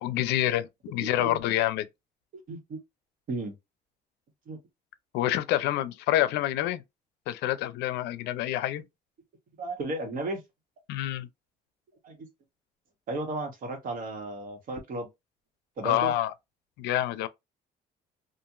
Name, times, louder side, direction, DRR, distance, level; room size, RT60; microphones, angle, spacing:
voice 1, 0.0-1.9 5.1-6.8 7.3-8.8 10.9-11.3 15.8-16.3 16.8-17.3, left 13 dB, 85° left, 0.4 m, -27 dB
voice 2, 1.0-1.4 2.5-2.8 3.3-3.5 4.5-4.6 9.6-10.4 12.0-12.3 13.1-15.1 15.8-16.1, right 2 dB, 55° right, 1.3 m, -34 dB
2.8 x 2.5 x 2.4 m
cardioid pair, 110°, 17 cm